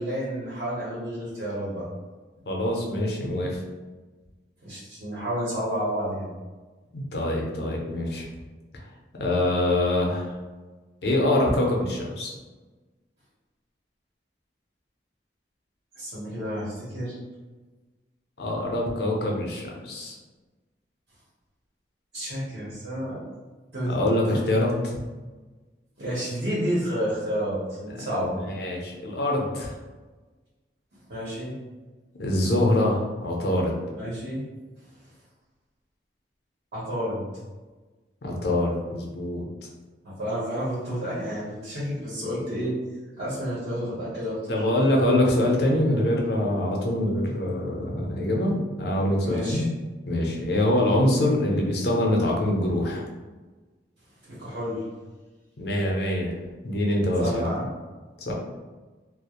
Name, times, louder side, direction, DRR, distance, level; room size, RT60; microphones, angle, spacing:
voice 1, 0.0-1.8 4.6-6.3 16.0-17.2 22.1-23.2 23.7-24.4 26.0-28.3 31.1-31.5 33.9-34.4 36.7-37.2 40.0-42.7 43.2-44.4 49.2-49.6 54.3-54.8 57.2-57.7, equal, 80° right, -9 dB, 0.8 m, -30 dB
voice 2, 2.5-3.6 6.9-8.2 9.2-10.3 11.0-12.3 18.4-20.2 23.9-25.0 28.3-29.7 32.2-33.7 38.2-39.4 44.5-49.6 50.0-53.0 55.6-56.3 56.6-57.4 58.2-58.3, left 1 dB, 65° left, -1 dB, 0.5 m, -24 dB
2.3 x 2.0 x 2.8 m, 1.3 s
head